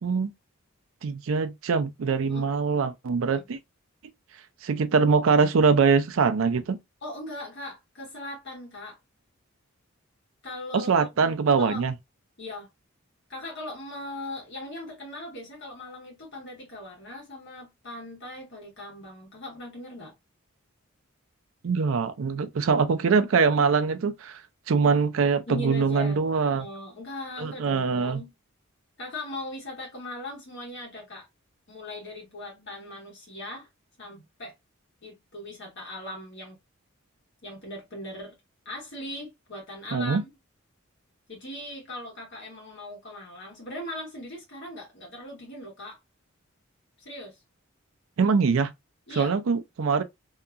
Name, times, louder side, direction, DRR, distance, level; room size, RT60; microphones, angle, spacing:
voice 1, 1.0-3.6 4.6-6.8 10.7-11.9 21.6-26.7 27.4-28.2 39.9-40.2 48.2-48.7 49.1-50.0, right 5 dB, 70° right, 0.4 m, -23 dB
voice 2, 7.0-9.0 10.4-11.9 12.4-12.7 13.3-20.1 25.5-26.2 26.5-28.3 29.0-31.3 31.7-33.7 34.0-34.5 35.0-36.6 37.4-38.3 38.6-40.3 41.3-46.0 47.0-47.4 49.1-49.4, left 1 dB, 60° left, 1.2 m, -39 dB
2.8 x 2.3 x 2.4 m
head